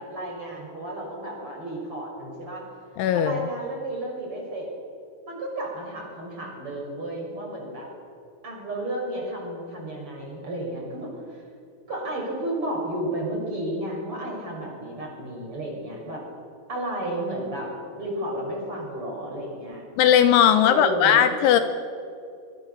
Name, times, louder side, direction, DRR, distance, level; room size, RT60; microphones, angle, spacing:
voice 1, 0.0-2.6 3.1-4.7 5.3-7.9 8.4-11.4 11.9-16.2 16.7-19.8 20.6-21.3, right 1 dB, 25° right, -1 dB, 6.8 m, -32 dB
voice 2, 3.0-3.4 20.0-21.6, left 10 dB, 80° left, 9 dB, 3.2 m, -18 dB
26.0 x 23.5 x 7.0 m, 2.5 s
omnidirectional pair, 5.7 m